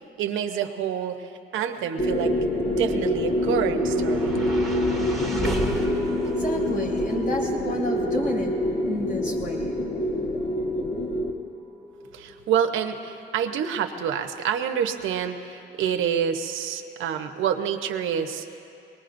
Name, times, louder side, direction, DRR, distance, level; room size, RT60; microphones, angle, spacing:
voice 1, 0.2-2.3 2.8-4.4 12.1-18.4, right 8 dB, 85° right, 5 dB, 0.9 m, -27 dB
sound 1, 2.0-11.3, left 1 dB, 30° left, 1.4 m, -26 dB
sound 2, 2.9-15.2, right 1 dB, ahead, 2.0 m, -35 dB
voice 2, 5.7-8.5 8.8-9.7, equal, 45° left, -4 dB, 4.2 m, -31 dB
23.5 x 20.0 x 2.6 m, 2.7 s
cardioid pair, 105°, 20 cm